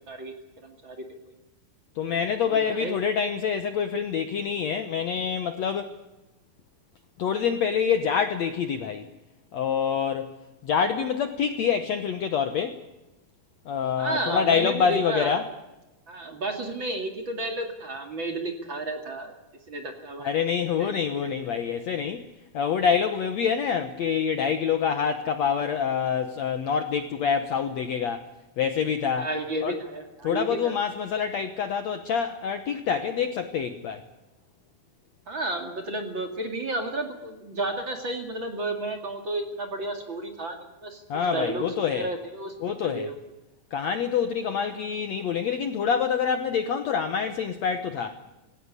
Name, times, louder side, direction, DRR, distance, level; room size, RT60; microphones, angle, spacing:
voice 1, 0.6-1.3 2.4-3.0 14.0-15.4 16.1-19.4 19.7-20.3 20.8-21.3 29.2-30.7 35.3-43.2, right 2 dB, 35° right, 5 dB, 2.6 m, -32 dB
voice 2, 2.0-5.9 7.2-9.1 9.5-10.3 10.6-12.8 13.7-15.5 20.2-22.2 22.5-28.2 28.6-29.3 29.6-29.7 30.2-34.0 41.1-42.1 42.6-43.1 43.7-48.2, left 7 dB, 65° left, 9 dB, 1.8 m, -26 dB
19.0 x 17.5 x 9.8 m, 1.0 s
omnidirectional pair, 4.3 m